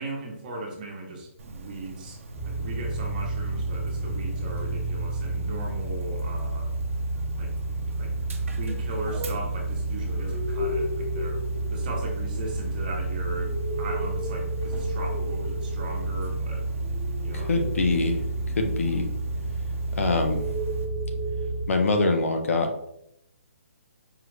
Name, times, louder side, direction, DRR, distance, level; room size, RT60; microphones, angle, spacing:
voice 1, 0.0-6.7 7.4-16.7 17.2-17.6, right 2 dB, 35° right, 0 dB, 1.0 m, -38 dB
Dog, 1.4-20.8, right 2 dB, 65° right, 0.7 m, -43 dB
sound 1, 2.4-21.7, right 2 dB, ahead, 0.4 m, -30 dB
voice 2, 17.3-18.2 18.6-19.1 19.9-20.4 21.7-22.9, left 3 dB, 70° left, 4 dB, 0.7 m, -24 dB
4.8 x 2.4 x 3.3 m, 0.76 s
hypercardioid pair, 160°, 8 cm